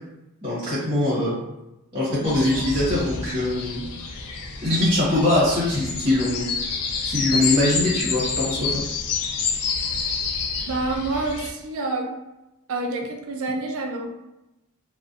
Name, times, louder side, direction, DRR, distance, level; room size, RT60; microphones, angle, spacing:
voice 1, 0.4-1.3 1.9-3.9 4.6-6.4 7.0-8.8, left 1 dB, 25° right, -8 dB, 0.8 m, -22 dB
sound 1, 2.2-11.5, left 5 dB, 90° left, 0.3 m, -28 dB
voice 2, 10.7-12.1 12.7-14.1, right 2 dB, 65° right, 1 dB, 0.4 m, -27 dB
2.4 x 2.1 x 2.4 m, 0.95 s
head